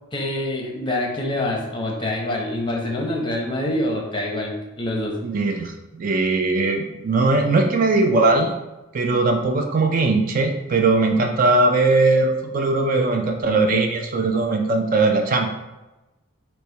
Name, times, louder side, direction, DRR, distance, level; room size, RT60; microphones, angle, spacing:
voice 1, 0.1-5.2, left 1 dB, 20° left, 0 dB, 0.8 m, -26 dB
voice 2, 5.2-8.5 8.9-15.5, right 3 dB, 40° right, 4 dB, 0.4 m, -20 dB
5.4 x 2.1 x 4.4 m, 1.0 s
head